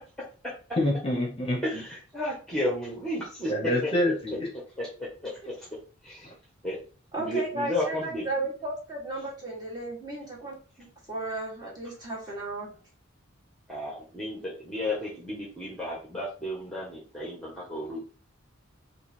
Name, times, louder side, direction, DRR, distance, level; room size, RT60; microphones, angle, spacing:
voice 1, 0.8-1.8 3.5-4.5 6.2-6.3, left 1 dB, 30° left, 0.9 m, -27 dB
voice 2, 1.6-3.5 3.8-3.9 4.8-4.9 5.2-5.3 6.0-6.3 6.6-6.8 7.2-8.2 13.7-18.0, left 1 dB, 5° left, 1.0 m, -32 dB
voice 3, 7.1-12.7, right 2 dB, 20° right, 1.6 m, -34 dB
3.7 x 2.7 x 4.3 m
head